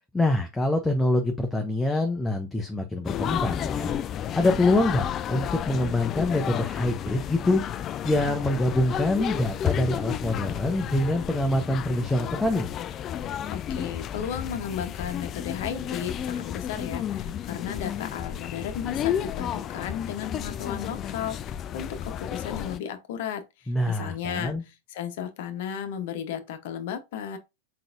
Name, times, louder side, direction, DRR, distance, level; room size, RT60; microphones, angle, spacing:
voice 1, 0.1-3.9 4.3-7.6 8.0-12.7 23.7-24.6, left 1 dB, 5° left, 0.7 m, -25 dB
sound 1, 3.0-22.8, left 10 dB, 30° left, 0.3 m, -32 dB
voice 2, 13.5-21.9 22.2-24.5 24.9-27.4, left 8 dB, 50° left, 0.9 m, -34 dB
4.7 x 3.9 x 2.5 m
figure-of-eight pair, 90°, 0 cm